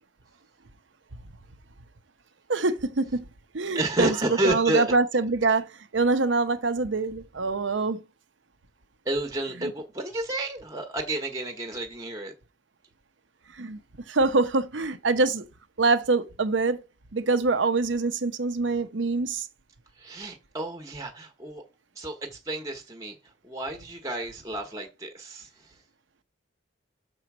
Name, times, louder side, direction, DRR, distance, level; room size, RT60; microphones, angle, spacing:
voice 1, 2.5-3.3 3.5-4.2 4.4-8.0 9.6-9.7 13.5-13.8 14.1-15.4 15.8-16.8 17.1-19.5, right 3 dB, 75° right, 0.8 m, -25 dB
voice 2, 3.7-4.9 9.0-12.3 20.0-21.6 22.0-23.2 23.4-25.8, right 1 dB, 20° right, 1.1 m, -31 dB
6.3 x 4.5 x 6.1 m
head